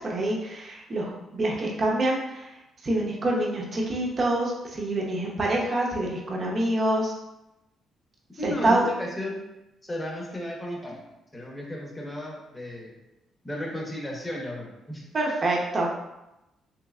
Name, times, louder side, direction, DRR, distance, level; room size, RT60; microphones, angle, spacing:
voice 1, 0.0-7.1 8.4-8.9 15.1-15.9, right 1 dB, 40° right, -2 dB, 0.8 m, -26 dB
voice 2, 8.4-9.4 9.8-11.0 11.3-12.9 13.4-15.1, left 1 dB, 20° left, -2 dB, 0.9 m, -34 dB
3.3 x 3.1 x 2.4 m, 0.94 s
cardioid pair, 90°, 0 cm